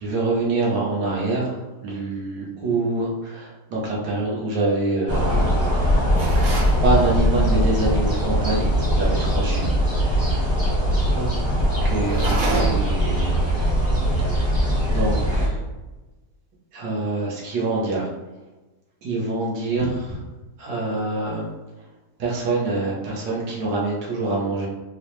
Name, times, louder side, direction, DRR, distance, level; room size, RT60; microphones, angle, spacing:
voice 1, 0.0-5.8 6.1-6.5 6.8-10.6 11.0-11.3 11.8-13.4 14.3-14.4 14.9-15.6 16.7-18.1 19.0-20.2 20.6-21.5 22.2-24.7, right 2 dB, 80° right, -4 dB, 1.6 m, -26 dB
sound 1, 5.1-15.5, equal, 20° right, 0.3 m, -21 dB
sound 2, 6.2-6.8 12.0-13.0, right 2 dB, 60° right, 1.0 m, -27 dB
4.5 x 2.1 x 3.0 m, 1.1 s
omnidirectional pair, 1.9 m